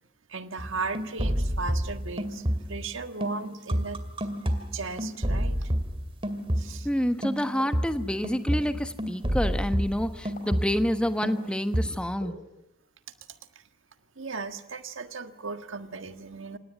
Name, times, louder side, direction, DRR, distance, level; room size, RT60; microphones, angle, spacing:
voice 1, 0.3-4.0 4.7-5.7 6.6-6.9 13.3-13.4 14.1-16.6, right 4 dB, 70° right, 8 dB, 1.6 m, -36 dB
sound 1, 0.6-2.9 3.2-6.9 7.2-11.0 11.2-12.0, equal, 30° right, 2.3 m, -30 dB
voice 2, 6.8-12.3, equal, 5° left, 8 dB, 1.2 m, -28 dB
sound 2, 7.6-7.7 8.5-8.6 9.4-9.5 10.4-10.5 11.3-11.4 12.2-12.3, left 2 dB, 40° left, 5.6 m, -42 dB
27.5 x 18.5 x 9.4 m, 0.91 s
head